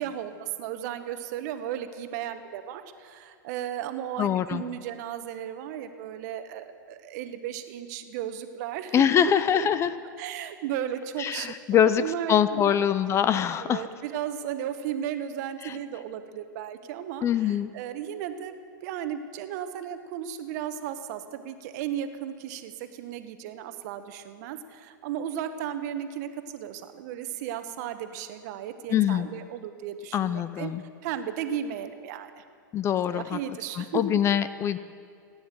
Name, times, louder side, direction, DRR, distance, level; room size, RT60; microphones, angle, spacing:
voice 1, 0.0-9.7 10.2-12.8 13.6-18.5 18.8-30.7 31.0-32.4 33.1-34.2, right 9 dB, 50° right, 9 dB, 1.1 m, -35 dB
voice 2, 4.2-4.6 8.9-9.9 11.2-13.8 15.6-15.8 17.2-17.7 28.9-29.3 30.1-30.8 32.7-33.4 33.8-34.8, left 9 dB, 25° left, 14 dB, 0.4 m, -24 dB
17.5 x 9.7 x 7.5 m, 2.3 s
hypercardioid pair, 115°, 11 cm